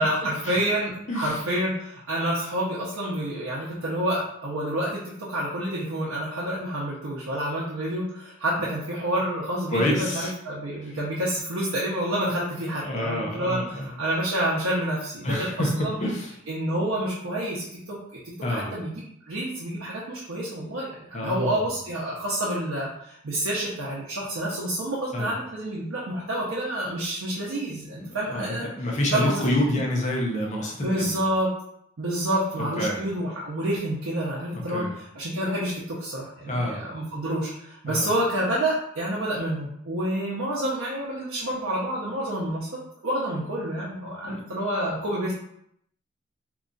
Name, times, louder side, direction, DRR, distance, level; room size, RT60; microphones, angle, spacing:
voice 1, 0.0-15.5 15.8-16.0 16.5-18.0 18.2-28.7 29.1-29.4 29.7-29.8 30.8-31.5 32.0-42.7 43.0-45.3, right 1 dB, 80° right, -6 dB, 0.7 m, -28 dB
voice 2, 1.1-1.4 9.7-10.3 12.8-13.9 15.2-16.3 18.4-18.7 21.1-21.6 25.1-25.3 28.0-31.2 32.6-33.0 34.5-34.9 36.5-36.8 37.9-38.1 44.2-44.4, left 1 dB, 35° left, -1 dB, 0.7 m, -28 dB
2.9 x 2.4 x 3.8 m, 0.73 s
head